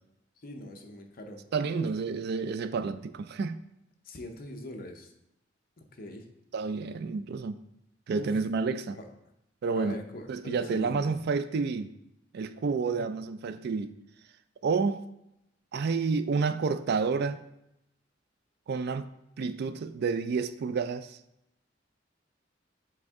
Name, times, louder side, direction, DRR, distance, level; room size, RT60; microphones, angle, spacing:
voice 1, 0.4-1.4 1.7-1.9 4.0-5.1 5.8-6.3 8.1-8.3 8.9-9.0 9.8-11.2 12.8-13.1, left 1 dB, 50° left, 4 dB, 0.7 m, -42 dB
voice 2, 1.5-3.6 6.5-7.6 8.1-9.0 9.6-10.0 10.3-11.9 12.3-13.9 14.6-15.0 15.7-17.4 18.7-19.1 19.4-21.2, right 4 dB, 60° right, 11 dB, 0.3 m, -29 dB
7.7 x 3.5 x 3.6 m, 0.83 s
head